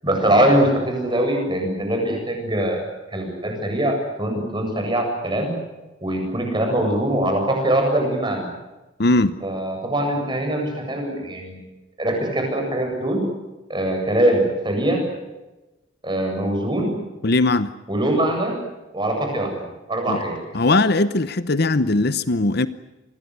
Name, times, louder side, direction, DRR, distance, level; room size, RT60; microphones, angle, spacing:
voice 1, 0.0-5.5 6.0-8.5 9.4-11.6 12.0-13.2 13.7-15.0 16.0-17.0 17.9-18.6 18.9-20.4, right 1 dB, 25° right, 3 dB, 8.0 m, -22 dB
voice 2, 9.0-9.4 17.2-17.7 20.1-20.2 20.5-22.7, left 2 dB, 50° left, 14 dB, 0.9 m, -19 dB
27.5 x 21.5 x 8.2 m, 1.0 s
head